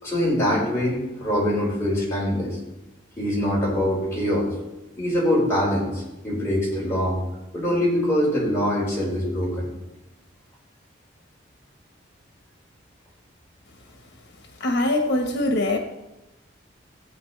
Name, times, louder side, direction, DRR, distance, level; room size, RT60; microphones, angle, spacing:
voice 1, 0.0-2.6 3.2-4.5 5.0-7.2 7.5-9.7, equal, 15° left, -6 dB, 4.6 m, -23 dB
voice 2, 14.6-15.8, left 1 dB, 70° left, 3 dB, 1.2 m, -22 dB
18.0 x 8.6 x 3.3 m, 1.0 s
head